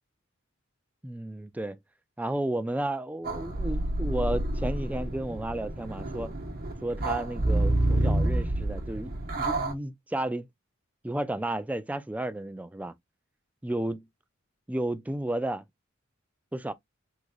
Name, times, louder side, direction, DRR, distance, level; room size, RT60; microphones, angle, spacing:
voice 1, 1.0-1.8 2.2-6.3 6.8-10.5 11.0-12.9 13.6-14.0 14.7-15.6 16.5-16.7, right 1 dB, 5° right, 0.4 m, -32 dB
sound 1, 3.2-9.7, right 1 dB, 50° right, 1.0 m, -28 dB
3.8 x 3.0 x 2.3 m
head